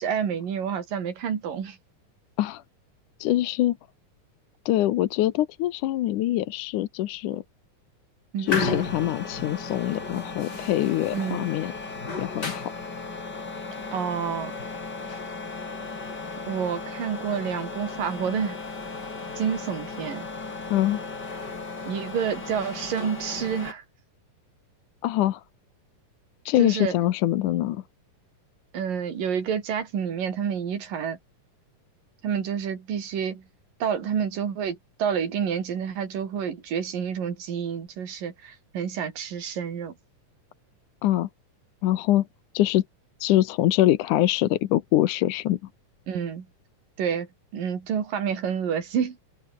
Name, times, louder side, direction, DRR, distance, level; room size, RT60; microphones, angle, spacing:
voice 1, 0.0-1.8 8.3-8.8 11.1-11.5 13.9-14.5 16.5-18.6 19.4-20.2 21.9-23.8 26.6-26.9 28.7-31.2 32.2-33.5 33.8-39.9 46.1-46.5 47.0-49.2, right 7 dB, 85° right, 4.8 m, -29 dB
voice 2, 3.2-3.8 4.7-7.4 8.4-11.7 12.2-12.7 20.7-21.0 25.0-25.4 26.5-27.8 41.0-41.3 41.8-42.3 42.5-42.8 43.2-45.6, left 14 dB, 75° left, 2.4 m, -24 dB
sound 1, 8.5-23.7, left 3 dB, 30° left, 4.2 m, -35 dB
omnidirectional pair, 3.8 m